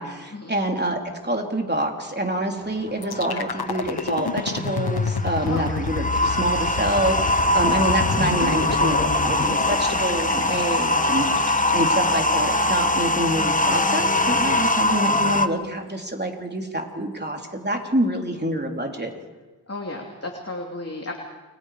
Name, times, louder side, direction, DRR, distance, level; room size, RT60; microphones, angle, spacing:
voice 1, 0.0-19.1, right 1 dB, 25° right, 2 dB, 3.7 m, -26 dB
sound 1, 2.6-15.5, left 1 dB, 20° left, 1.3 m, -23 dB
sound 2, 3.0-13.0, left 5 dB, 85° left, 1.1 m, -30 dB
voice 2, 19.7-21.1, left 2 dB, 40° left, 0 dB, 2.9 m, -33 dB
29.5 x 23.0 x 5.1 m, 1.2 s
wide cardioid pair, 40°, 38 cm